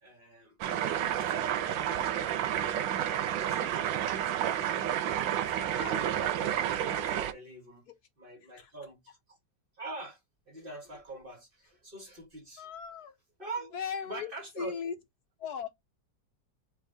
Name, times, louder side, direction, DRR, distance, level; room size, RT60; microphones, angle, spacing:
voice 1, 0.0-4.3 4.9-7.9 8.2-9.4 9.8-10.2 10.5-12.7 13.4-13.7 14.1-14.8, right 3 dB, 30° right, 1.5 m, -46 dB
sound 1, 0.6-7.3, right 10 dB, 85° right, 1.4 m, -30 dB
voice 2, 5.6-6.0 8.6-8.7 12.6-13.1 13.7-14.3 14.6-15.0 15.4-15.7, left 6 dB, 65° left, 1.2 m, -37 dB
4.3 x 3.6 x 3.4 m
omnidirectional pair, 2.0 m